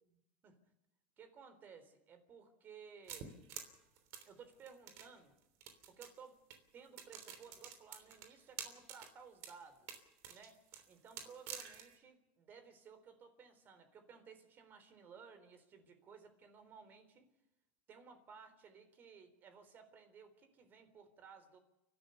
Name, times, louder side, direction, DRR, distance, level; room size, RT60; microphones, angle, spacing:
voice 1, 1.2-3.4 4.2-5.3 5.9-6.4 6.7-17.3 17.9-21.6, right 6 dB, 40° right, 10 dB, 3.8 m, -58 dB
sound 1, 3.1-5.1 5.6-6.2 6.5-6.6 7.0-9.1 9.4-9.6 9.9-12.0, right 8 dB, 60° right, 3.2 m, -49 dB
30.0 x 12.5 x 7.0 m, 0.93 s
supercardioid pair, 110°, 5 cm